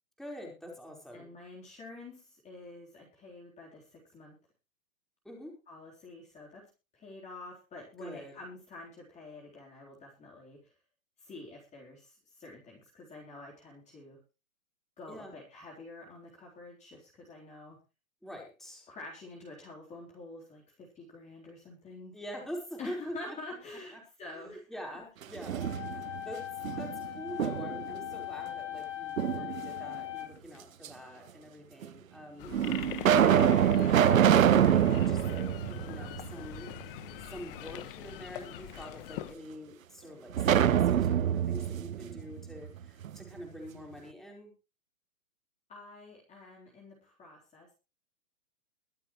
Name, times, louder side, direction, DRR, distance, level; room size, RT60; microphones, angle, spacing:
voice 1, 0.2-1.3 5.2-5.6 8.0-8.3 15.1-15.3 18.2-18.9 22.1-23.4 23.9-24.0 24.3-32.5 33.0-37.0 37.3-44.5, equal, ahead, -1 dB, 4.6 m, -45 dB
voice 2, 1.1-4.4 5.7-6.7 6.9-10.7 11.2-14.2 15.0-17.8 18.9-22.2 22.8-24.6 25.9-26.2 27.0-27.1 45.7-47.7, left 2 dB, 15° left, -3 dB, 4.0 m, -48 dB
sound 1, 25.2-26.2 26.6-27.9 29.2-30.0 30.8-30.9 31.8-31.9 32.5-36.6 36.9-37.0 40.4-43.2, right 9 dB, 70° right, 1.2 m, -26 dB
sound 2, 25.6-30.6, left 15 dB, 60° left, 2.9 m, -40 dB
sound 3, 32.4-39.3, left 12 dB, 40° left, 1.5 m, -43 dB
23.0 x 8.3 x 3.2 m, 0.31 s
hypercardioid pair, 135°, 41 cm